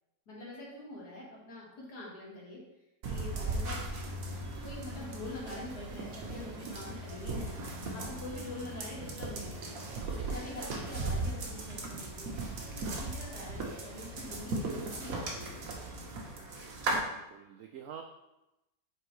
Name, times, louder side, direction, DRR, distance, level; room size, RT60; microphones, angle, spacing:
voice 1, 0.3-2.6 3.0-3.8 4.3-7.5 7.9-9.8 10.2-12.4 12.7-16.1, left 2 dB, 60° left, -4 dB, 2.4 m, -45 dB
sound 1, 3.0-17.0, right 2 dB, 55° right, 1.3 m, -38 dB
sound 2, 4.3-16.3, right 1 dB, 40° right, 1.0 m, -51 dB
voice 2, 16.9-18.0, right 8 dB, 85° right, 4 dB, 0.7 m, -47 dB
7.8 x 4.5 x 3.1 m, 0.94 s
omnidirectional pair, 1.9 m